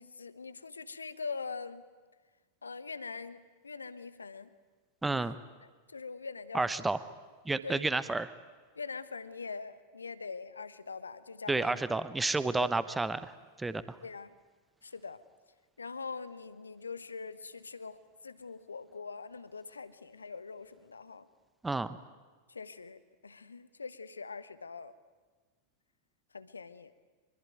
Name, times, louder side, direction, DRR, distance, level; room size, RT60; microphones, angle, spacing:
voice 1, 0.0-1.8 2.6-4.5 5.1-5.4 5.6-6.9 7.6-7.8 8.7-11.8 12.6-12.7 14.0-14.3 14.8-15.2 15.8-18.0 18.2-21.3 22.5-24.9 26.3-26.9, left 4 dB, 75° left, 15 dB, 1.2 m, -43 dB
voice 2, 5.0-5.4 6.5-7.0 7.4-8.3 11.5-14.0 21.6-22.0, right 3 dB, 10° right, 14 dB, 1.0 m, -31 dB
25.0 x 23.0 x 9.3 m, 1.4 s
figure-of-eight pair, 90°, 0 cm